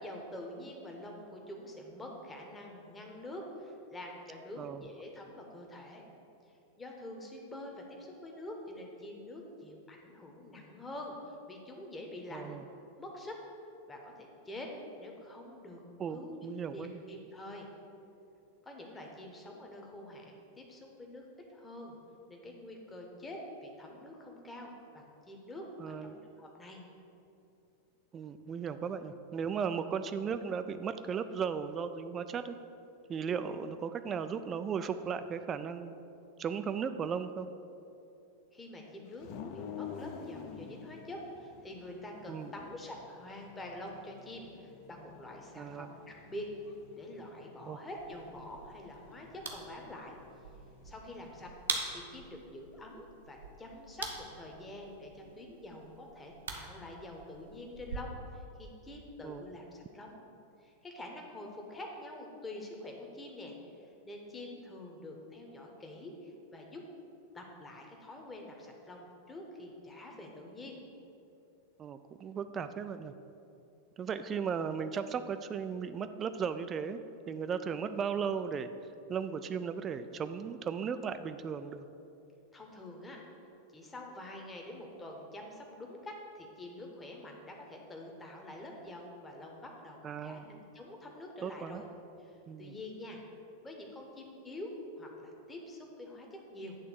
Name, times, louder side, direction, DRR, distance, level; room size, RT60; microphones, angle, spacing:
voice 1, 0.0-6.0 6.8-12.6 13.0-13.4 13.9-15.8 16.1-16.4 16.7-17.7 18.6-22.0 22.3-26.8 38.5-46.5 47.0-50.2 50.8-51.5 51.9-60.2 60.6-66.8 67.3-70.8 82.5-83.2 83.7-91.8 92.2-93.2 93.6-96.8, left 1 dB, 15° left, 1 dB, 1.0 m, -46 dB
voice 2, 12.3-12.6 16.0-17.0 25.8-26.2 28.1-32.5 33.1-35.9 36.4-37.5 42.3-42.5 45.6-45.9 47.7-47.8 59.2-59.4 71.8-73.1 74.0-77.0 77.3-78.7 79.1-81.9 90.0-90.5 91.4-91.8 92.5-92.8, right 6 dB, 25° right, 10 dB, 0.3 m, -36 dB
sound 1, 39.2-52.0, left 6 dB, 45° left, 0.5 m, -50 dB
sound 2, 48.0-58.0, right 4 dB, 70° right, 0.8 m, -44 dB
8.8 x 3.6 x 6.0 m, 2.7 s
figure-of-eight pair, 90°, 0 cm